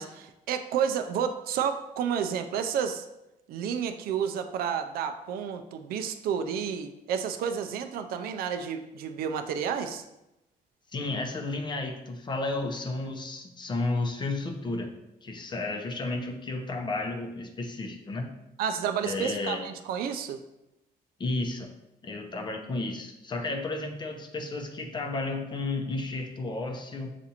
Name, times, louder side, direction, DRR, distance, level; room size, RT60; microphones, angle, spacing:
voice 1, 0.0-3.1 3.5-10.0 18.6-20.4, right 7 dB, 85° right, 8 dB, 0.4 m, -31 dB
voice 2, 10.9-14.9 15.2-18.3 19.0-19.6 21.2-21.7 22.0-27.1, left 2 dB, 30° left, 4 dB, 0.6 m, -32 dB
6.8 x 2.5 x 2.8 m, 0.91 s
cardioid pair, 120°, 15 cm